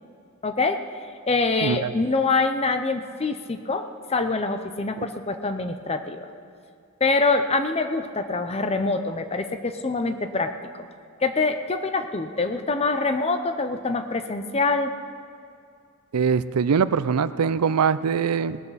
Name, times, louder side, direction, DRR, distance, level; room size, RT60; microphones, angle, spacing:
voice 1, 0.4-0.8 1.3-6.3 7.0-10.6 11.2-14.9, left 3 dB, 25° left, 8 dB, 0.7 m, -25 dB
voice 2, 1.6-1.9 5.0-5.1 16.1-18.6, right 6 dB, 85° right, 15 dB, 0.5 m, -22 dB
19.5 x 13.0 x 4.1 m, 2.4 s
head